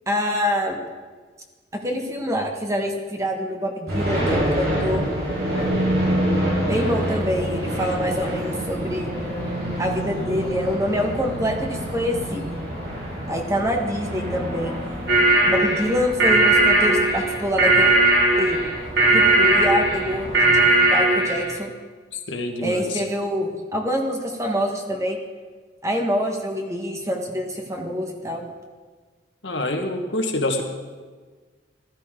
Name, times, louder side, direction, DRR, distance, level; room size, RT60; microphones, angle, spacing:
voice 1, 0.1-0.8 1.7-5.0 6.6-9.1 9.8-12.6 13.3-14.7 15.4-17.9 18.4-18.6 19.1-21.7 22.6-25.2 25.8-28.5, equal, 15° right, 2 dB, 1.4 m, -25 dB
sound 1, 3.9-20.7, equal, 60° right, 4.9 m, -28 dB
voice 2, 6.7-7.0 22.1-23.0 29.4-30.6, left 1 dB, 80° left, 3 dB, 1.6 m, -27 dB
sound 2, 15.1-21.5, right 2 dB, 85° right, 4.0 m, -18 dB
14.5 x 13.5 x 3.8 m, 1.4 s
head